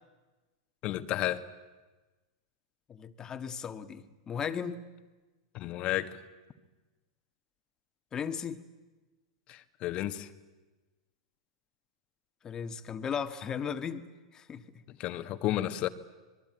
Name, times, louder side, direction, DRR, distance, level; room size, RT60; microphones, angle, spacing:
voice 1, 0.8-1.4 5.5-6.2 9.5-10.3 14.9-15.9, left 14 dB, 40° left, 10 dB, 1.5 m, -32 dB
voice 2, 2.9-4.8 8.1-8.6 12.4-14.1 14.3-14.6, left 7 dB, 25° left, 9 dB, 1.6 m, -36 dB
25.5 x 21.5 x 9.2 m, 1.2 s
hypercardioid pair, 120°, 3 cm